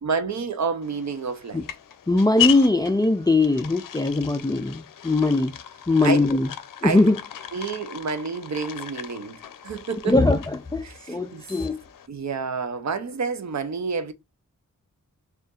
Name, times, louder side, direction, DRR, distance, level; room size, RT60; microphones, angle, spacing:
voice 1, 0.0-1.6 6.0-6.2 6.8-7.0 7.5-10.2 10.8-11.5 12.1-14.1, right 5 dB, 60° right, 0.6 m, -29 dB
sound 1, 0.8-12.1, left 11 dB, 80° left, 0.5 m, -35 dB
voice 2, 2.1-5.5 5.9-6.5 6.8-7.2 10.0-10.4 10.7-11.8, left 2 dB, 15° left, 0.3 m, -20 dB
6.4 x 2.5 x 2.3 m
wide cardioid pair, 130°, 32 cm